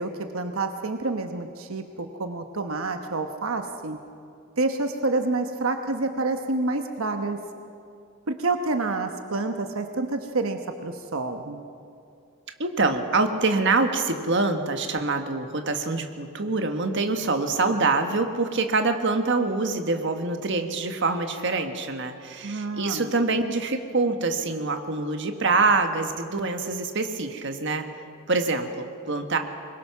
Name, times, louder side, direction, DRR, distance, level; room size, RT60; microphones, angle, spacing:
voice 1, 0.0-4.0 4.6-7.4 8.3-11.6 22.4-23.1, right 3 dB, 90° right, 6 dB, 1.1 m, -28 dB
voice 2, 12.6-27.9 28.3-29.4, right 3 dB, 60° right, 6 dB, 1.6 m, -25 dB
24.5 x 21.5 x 6.0 m, 2.5 s
head